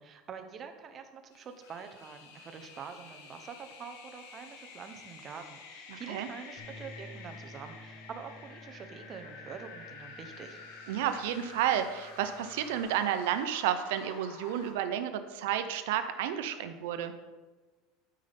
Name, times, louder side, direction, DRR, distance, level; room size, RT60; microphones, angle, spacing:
voice 1, 0.0-10.6, right 6 dB, 25° right, 6 dB, 0.8 m, -46 dB
sound 1, 1.3-14.7, left 4 dB, 80° left, 1.6 m, -50 dB
voice 2, 5.9-6.3 10.9-17.1, right 10 dB, 80° right, 9 dB, 0.7 m, -31 dB
Bass guitar, 6.6-12.8, left 1 dB, 30° left, 1.3 m, -53 dB
12.0 x 5.6 x 3.5 m, 1.3 s
cardioid pair, 165°, 0 cm